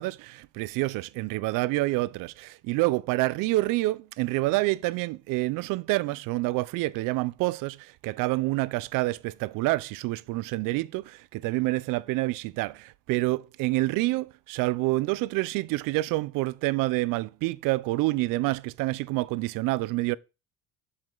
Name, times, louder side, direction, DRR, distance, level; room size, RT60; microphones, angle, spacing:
voice 1, 0.0-20.2, right 20 dB, 80° right, 0.5 m, -27 dB
7.7 x 7.4 x 3.8 m
cardioid pair, 155°, 32 cm